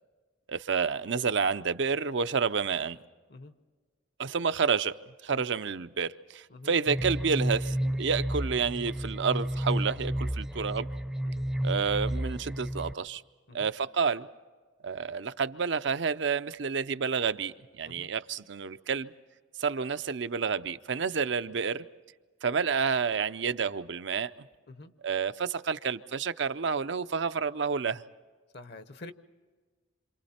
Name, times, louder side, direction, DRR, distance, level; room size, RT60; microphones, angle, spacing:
voice 1, 0.5-3.0 4.2-4.9 5.2-10.9 11.6-13.2 13.5-14.3 14.8-19.1 19.6-21.8 22.4-24.3 25.0-28.0, right 5 dB, 65° right, 0.6 m, -29 dB
sound 1, 6.9-12.9, right 1 dB, 5° right, 0.6 m, -31 dB
voice 2, 28.5-29.1, left 2 dB, 55° left, 0.9 m, -46 dB
27.5 x 26.5 x 4.3 m
head